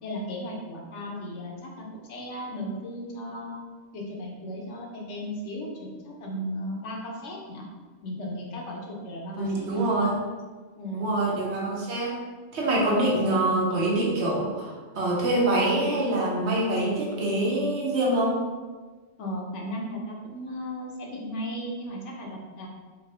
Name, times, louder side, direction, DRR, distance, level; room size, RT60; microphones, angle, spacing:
voice 1, 0.0-3.6 3.9-7.7 8.0-9.9 10.8-11.1 12.8-13.0 19.2-22.7, equal, 75° left, -1 dB, 1.0 m, -36 dB
voice 2, 9.3-10.2 10.9-12.2 12.5-18.4, right 1 dB, 65° right, -2 dB, 1.1 m, -25 dB
3.6 x 2.8 x 3.3 m, 1.4 s
omnidirectional pair, 1.2 m